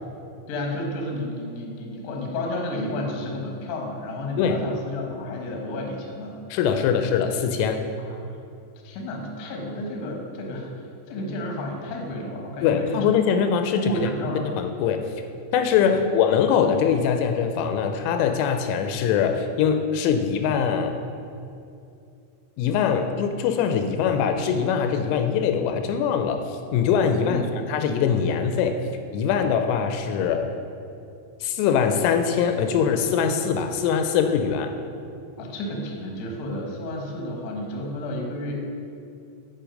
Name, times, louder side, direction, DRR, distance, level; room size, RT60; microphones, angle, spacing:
voice 1, 0.5-6.3 8.0-8.1 8.8-10.7 11.1-13.1 13.7-14.5 15.9-16.1 27.2-27.5 35.4-38.5, left 1 dB, 65° left, 0 dB, 2.4 m, -31 dB
voice 2, 6.5-7.8 12.6-13.9 14.6-15.0 15.5-21.0 22.6-28.8 29.1-30.5 31.4-34.7, left 7 dB, 85° left, 6 dB, 3.0 m, -22 dB
8.5 x 5.2 x 5.1 m, 2.6 s
omnidirectional pair, 5.5 m